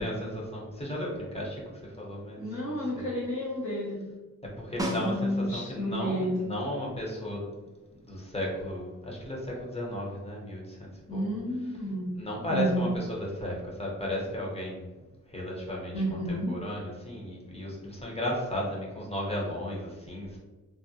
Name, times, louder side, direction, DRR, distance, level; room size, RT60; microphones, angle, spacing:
voice 1, 0.0-3.1 4.6-7.5 8.0-11.3 12.1-14.8 15.3-20.4, left 1 dB, 20° left, -3 dB, 0.8 m, -35 dB
voice 2, 2.4-4.0 5.0-6.4 11.1-12.1 12.5-12.9 15.9-16.5, equal, 35° left, -11 dB, 1.2 m, -30 dB
Snare drum, 4.8-5.7 10.2-10.3, equal, 10° right, 0.3 m, -33 dB
3.5 x 2.1 x 2.7 m, 1.2 s
wide cardioid pair, 120°, 33 cm